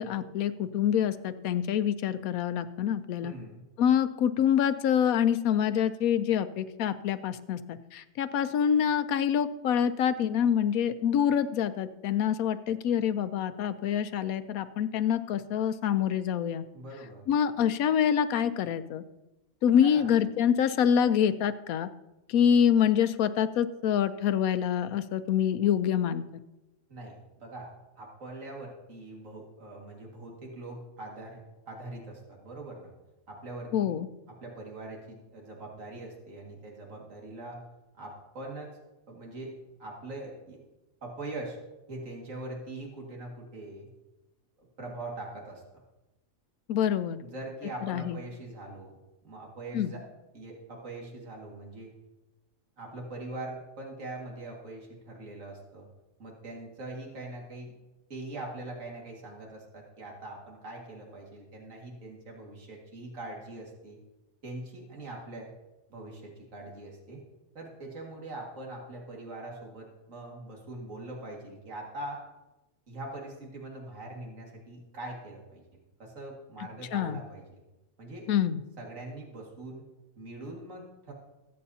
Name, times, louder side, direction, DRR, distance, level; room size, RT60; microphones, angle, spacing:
voice 1, 0.0-3.3 3.8-16.6 17.3-19.0 19.6-21.9 22.3-26.2 33.7-34.1 46.7-47.2 47.8-48.2 49.7-49.9 76.9-77.2 78.3-78.6, left 9 dB, 90° left, 13 dB, 1.1 m, -26 dB
voice 2, 3.2-3.6 16.7-17.3 19.7-20.1 26.9-32.9 33.3-33.9 34.4-37.6 37.9-38.7 39.1-39.5 39.8-40.6 41.0-41.6 41.9-43.9 44.8-45.8 47.2-49.0 49.2-50.0 50.3-51.9 52.8-55.9 56.2-57.7 58.1-64.0 64.4-65.5 65.9-67.2 67.5-72.2 72.9-77.6 78.0-78.3 78.8-79.8 80.2-81.1, right 2 dB, 65° right, -1 dB, 2.4 m, -42 dB
21.5 x 8.5 x 2.8 m, 1.0 s
omnidirectional pair, 1.4 m